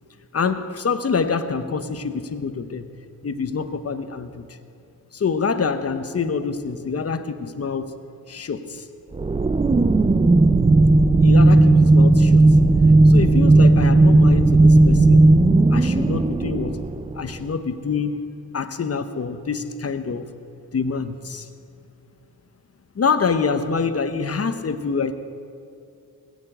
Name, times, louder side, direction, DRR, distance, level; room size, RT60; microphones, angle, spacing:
voice 1, 0.3-2.9 3.2-4.6 5.1-8.0 8.3-8.9 11.2-12.6 13.0-15.3 15.7-16.8 17.1-18.2 18.5-20.3 20.7-21.5 22.9-25.1, left 5 dB, 40° left, 10 dB, 0.8 m, -26 dB
sound 1, 9.1-17.4, right 2 dB, 20° right, 0.3 m, -14 dB
20.5 x 7.0 x 8.9 m, 2.6 s
wide cardioid pair, 140°, 36 cm